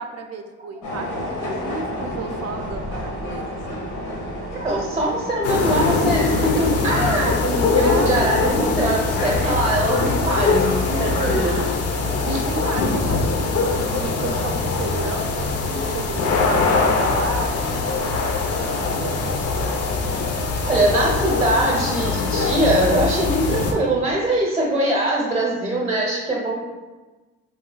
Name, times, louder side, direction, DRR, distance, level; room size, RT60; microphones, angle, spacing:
voice 1, 0.0-3.8 7.7-8.2 10.4-11.7 12.2-17.5 18.0-19.5, right 4 dB, 55° right, 5 dB, 0.5 m, -33 dB
sound 1, 0.8-11.7, left 1 dB, 90° left, 1.1 m, -32 dB
voice 2, 4.5-10.7 11.0-11.6 12.3-12.4 20.6-26.6, right 1 dB, 20° right, -3 dB, 0.7 m, -22 dB
sound 2, 5.4-23.7, left 4 dB, 55° left, 0.5 m, -22 dB
3.1 x 2.3 x 3.8 m, 1.2 s
cardioid pair, 90°, 30 cm